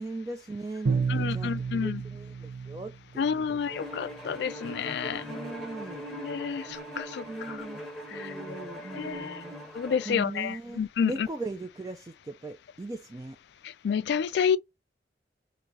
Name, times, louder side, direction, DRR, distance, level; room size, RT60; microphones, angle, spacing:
voice 1, 0.0-3.6 5.2-6.1 7.3-7.8 8.1-9.6 10.1-13.4, right 2 dB, 20° right, 0.3 m, -39 dB
Bowed string instrument, 0.9-3.7, right 5 dB, 75° right, 0.7 m, -31 dB
voice 2, 1.1-2.0 3.2-5.2 6.2-7.6 8.1-8.3 8.9-9.4 9.7-11.3 13.8-14.6, left 7 dB, 65° left, 0.3 m, -29 dB
Bowed string instrument 2, 3.7-10.3, equal, ahead, 0.9 m, -41 dB
3.0 x 2.6 x 3.8 m
head